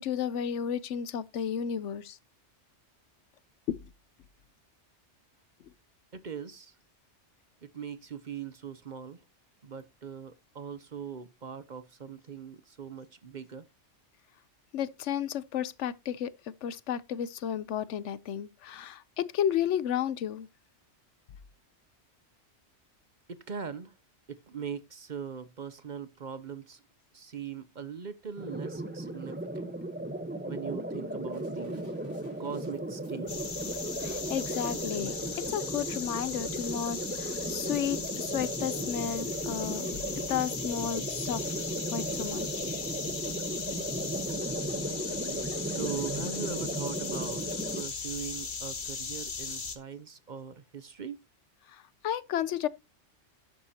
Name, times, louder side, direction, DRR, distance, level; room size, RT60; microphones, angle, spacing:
voice 1, 0.0-2.2 3.7-3.8 14.7-16.3 16.6-20.5 34.0-39.9 40.3-41.4 41.9-42.9 45.0-45.1 51.7-52.7, left 9 dB, 80° left, 1.0 m, -33 dB
voice 2, 6.1-6.8 7.6-9.2 9.6-13.6 23.3-23.9 24.3-26.8 27.1-29.7 30.4-32.0 32.4-33.5 45.7-51.2, right 7 dB, 45° right, 0.8 m, -41 dB
sound 1, 28.4-47.8, right 1 dB, 10° right, 0.9 m, -36 dB
sound 2, 31.3-45.8, right 1 dB, 90° right, 5.3 m, -63 dB
sound 3, 33.3-49.8, left 4 dB, 45° left, 1.3 m, -38 dB
12.0 x 10.5 x 2.8 m
omnidirectional pair, 1.2 m